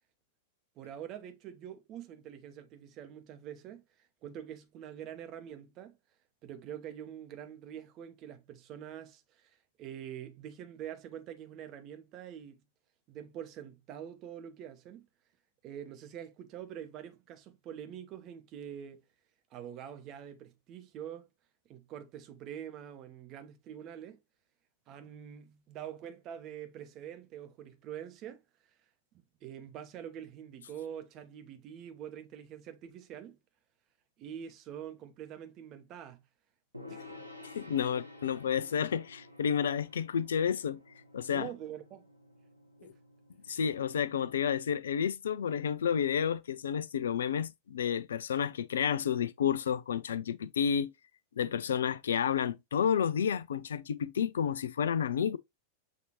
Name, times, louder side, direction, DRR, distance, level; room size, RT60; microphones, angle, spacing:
voice 1, 0.8-3.8 4.2-6.0 6.4-12.6 13.1-15.1 15.6-19.0 19.5-21.3 21.7-24.2 24.9-28.4 29.1-33.4 34.2-36.2 36.9-37.2 37.7-37.9 41.3-42.1 42.8-42.9 43.5-43.8, right 9 dB, 35° right, 0.8 m, -45 dB
Gong, 36.7-44.2, left 2 dB, 90° right, 0.9 m, -52 dB
voice 2, 37.4-40.8 41.1-41.5 43.5-50.9 51.4-55.4, left 8 dB, 65° left, 0.3 m, -30 dB
6.5 x 2.8 x 2.9 m
figure-of-eight pair, 90°, 0 cm